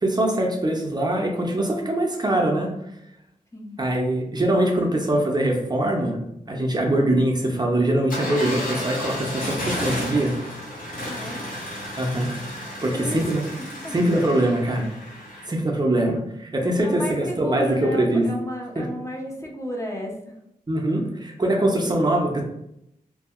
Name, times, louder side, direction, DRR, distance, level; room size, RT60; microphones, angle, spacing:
voice 1, 0.0-2.8 3.8-6.2 6.5-10.3 12.0-12.3 12.8-13.4 13.9-14.9 15.5-18.3 18.8-18.9 20.7-22.4, right 1 dB, 30° right, 0 dB, 0.6 m, -22 dB
sound 1, 8.1-15.5, left 1 dB, 70° left, 0.9 m, -32 dB
voice 2, 11.0-11.5 12.9-13.3 13.8-13.9 16.0-16.2 16.8-20.3, equal, 20° left, -1 dB, 0.7 m, -33 dB
2.7 x 2.6 x 2.4 m, 0.79 s
cardioid pair, 55°, 15 cm